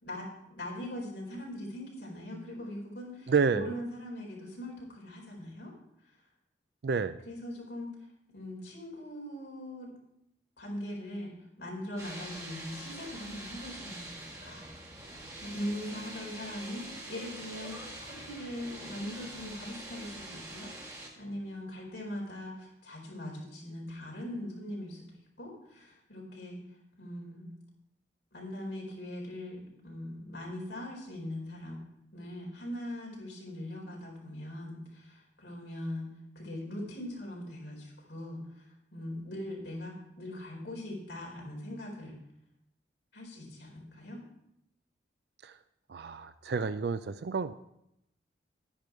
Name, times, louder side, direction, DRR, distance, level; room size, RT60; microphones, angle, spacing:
voice 1, 0.0-5.7 6.0-6.2 7.2-7.9 8.3-9.9 10.6-14.8 15.0-25.0 25.4-26.6 27.0-27.5 28.3-31.8 32.1-36.1 36.3-42.1 43.1-44.2, left 1 dB, 75° left, -1 dB, 4.5 m, -41 dB
voice 2, 3.3-3.7 6.8-7.2 45.4-45.5 45.9-47.5, right 5 dB, 60° right, 12 dB, 0.4 m, -29 dB
sound 1, 12.0-21.1, right 1 dB, 15° right, 1.9 m, -44 dB
10.5 x 10.0 x 4.6 m, 0.78 s
head